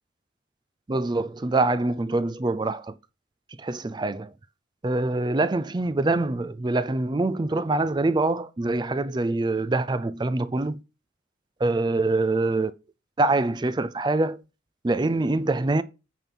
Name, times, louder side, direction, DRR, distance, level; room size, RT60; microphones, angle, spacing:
voice 1, 0.9-2.9 3.6-4.3 4.8-10.8 11.6-12.7 13.2-14.4 14.8-15.8, right 2 dB, 20° right, 0.4 m, -24 dB
9.1 x 4.4 x 5.3 m
head